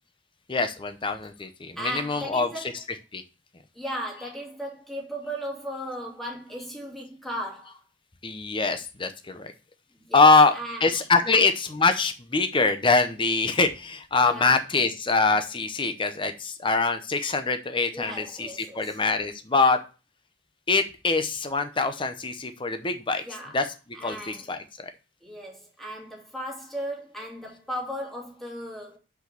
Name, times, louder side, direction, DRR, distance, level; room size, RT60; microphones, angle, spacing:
voice 1, 0.5-3.2 8.2-9.5 10.1-10.5 10.8-19.8 20.7-23.2 23.5-23.7 24.0-24.6, left 3 dB, 25° left, 0.7 m, -24 dB
voice 2, 1.8-2.8 3.7-7.8 10.0-10.9 11.2-11.4 14.2-14.6 17.9-19.0 23.2-23.6 23.9-24.5 25.2-29.0, equal, ahead, 2.8 m, -36 dB
6.0 x 5.5 x 6.9 m
head